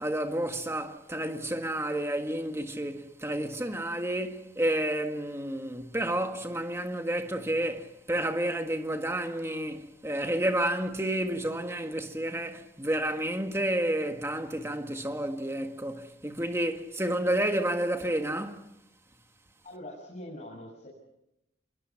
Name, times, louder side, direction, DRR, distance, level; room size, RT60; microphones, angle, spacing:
voice 1, 0.0-18.6, right 1 dB, 15° right, 1.7 m, -30 dB
voice 2, 19.6-20.9, left 1 dB, 40° left, 6.2 m, -43 dB
28.0 x 22.0 x 5.9 m
head